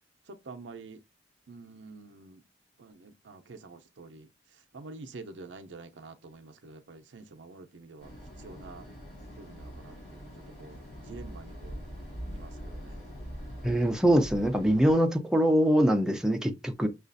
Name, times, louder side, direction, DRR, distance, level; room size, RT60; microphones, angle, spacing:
voice 1, 0.3-1.0 1.5-2.4 2.8-4.3 4.7-8.1 8.4-8.9 9.4-10.3 10.6-10.8 11.1-11.8 12.3-13.0, right 3 dB, 90° right, 0.6 m, -47 dB
sound 1, 8.0-14.9, equal, 40° left, 2.7 m, -43 dB
voice 2, 13.6-16.9, equal, 5° right, 0.5 m, -23 dB
6.1 x 2.4 x 2.5 m
head